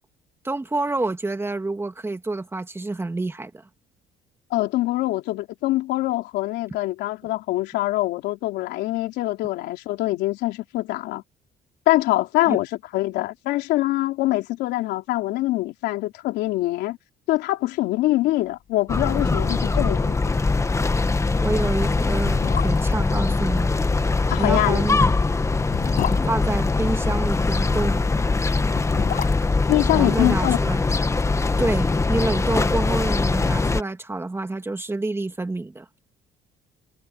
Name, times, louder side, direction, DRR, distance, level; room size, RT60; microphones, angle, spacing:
voice 1, 0.4-3.5 12.5-12.6 21.4-23.7 24.4-25.0 26.3-28.0 29.9-30.8 31.6-35.9, right 2 dB, 15° right, 2.2 m, -27 dB
voice 2, 4.5-11.2 11.9-12.7 12.9-17.0 17.3-20.3 24.3-24.8 29.7-30.6, left 17 dB, 90° left, 3.5 m, -24 dB
sound 1, 18.7-18.8 19.1-19.7 20.0-20.1 20.5-20.7 21.4-21.5 22.1-23.1 24.6-27.3 28.5-30.8 31.0-31.1, left 10 dB, 55° left, 7.4 m, -32 dB
sound 2, 18.9-33.8, left 3 dB, 15° left, 1.2 m, -22 dB
cardioid pair, 110°, 17 cm